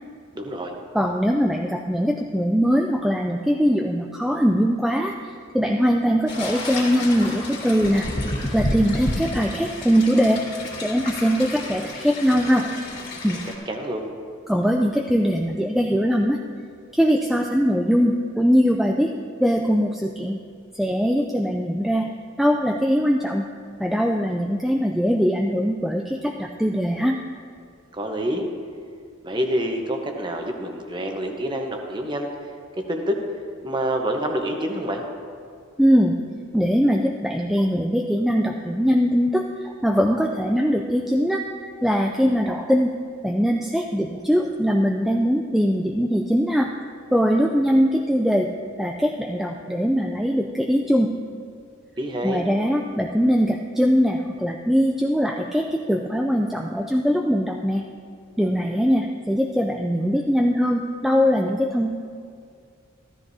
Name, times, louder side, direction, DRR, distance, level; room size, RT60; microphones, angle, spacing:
voice 1, 0.3-0.7 13.7-14.0 27.9-28.5 29.2-32.3 32.9-33.2 33.6-35.0 52.0-52.4, equal, 20° right, 3 dB, 0.9 m, -27 dB
voice 2, 0.9-10.4 10.8-12.7 13.2-13.4 14.5-16.4 16.9-19.1 19.4-20.4 20.8-22.1 22.4-23.5 23.8-27.2 35.8-36.1 36.5-41.4 41.8-42.9 43.2-46.7 47.1-48.5 48.8-51.1 52.2-57.8 58.4-61.9, equal, ahead, 1 dB, 0.3 m, -21 dB
sound 1, 6.3-13.5, left 1 dB, 45° left, 2.9 m, -31 dB
15.0 x 13.0 x 2.7 m, 2.2 s
head